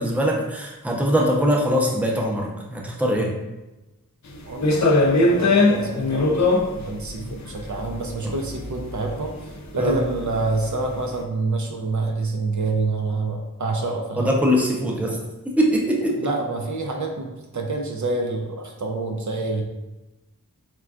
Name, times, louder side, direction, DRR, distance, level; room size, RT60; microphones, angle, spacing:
voice 1, 0.0-3.3 8.2-8.3 9.8-9.9 14.2-15.2 15.6-16.2, equal, 5° right, -2 dB, 0.6 m, -22 dB
sound 1, 4.3-10.7, left 2 dB, 55° left, 0.5 m, -21 dB
voice 2, 4.5-6.4 6.7-9.3 9.7-14.3 16.2-19.6, right 3 dB, 60° right, 1 dB, 0.5 m, -27 dB
4.3 x 2.3 x 2.3 m, 1.0 s
wide cardioid pair, 50°, 34 cm